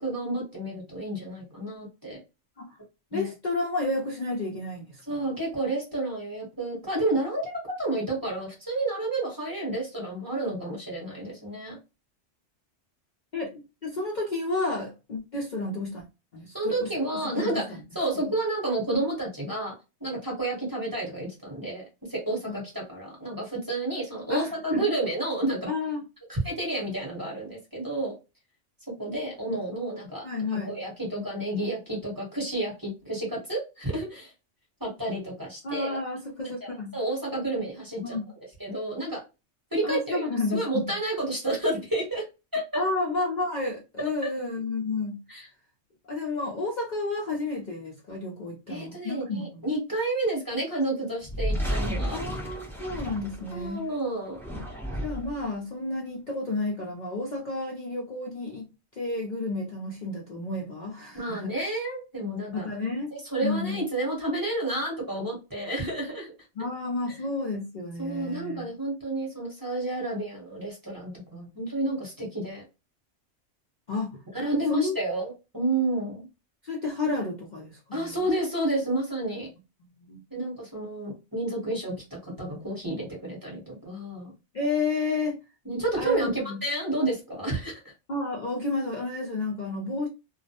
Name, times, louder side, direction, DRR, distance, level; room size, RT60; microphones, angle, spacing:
voice 1, 0.0-2.2 3.1-3.3 5.1-11.8 16.5-25.6 26.3-28.1 29.0-30.3 30.7-34.3 34.8-36.0 36.4-38.2 38.6-39.2 39.7-42.2 42.5-42.8 45.3-45.5 48.7-52.2 53.5-54.4 61.1-62.7 63.1-66.3 68.0-72.6 74.3-76.3 77.9-79.5 80.3-84.3 85.6-87.9, right 2 dB, 20° right, 0.9 m, -30 dB
voice 2, 3.1-5.0 13.3-13.5 13.8-16.0 16.3-16.9 17.2-17.8 18.2-18.3 22.5-22.6 24.3-24.8 25.7-26.0 30.2-30.8 35.6-36.9 38.0-38.3 39.8-40.6 42.7-45.2 46.1-49.7 52.1-53.9 55.0-58.7 59.0-61.5 62.5-63.8 66.6-68.7 73.9-74.2 74.7-75.0 76.6-78.2 80.1-80.2 84.5-85.4 86.0-86.6 88.1-90.1, left 3 dB, 50° left, 0.6 m, -31 dB
sound 1, 51.2-53.8 54.3-55.4, equal, 5° left, 0.5 m, -32 dB
2.3 x 2.0 x 2.7 m
omnidirectional pair, 1.2 m